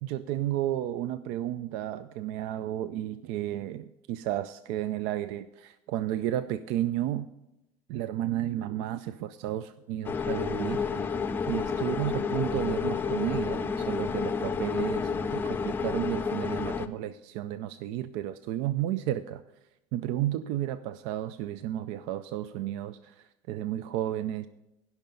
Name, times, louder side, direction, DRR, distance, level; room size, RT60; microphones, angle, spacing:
voice 1, 0.0-7.3 7.9-11.1 11.5-19.4 19.9-24.5, right 12 dB, 65° right, 14 dB, 0.4 m, -32 dB
sound 1, 10.0-16.9, left 5 dB, 20° left, 0.5 m, -30 dB
16.0 x 5.8 x 5.3 m, 0.89 s
cardioid pair, 135°, 11 cm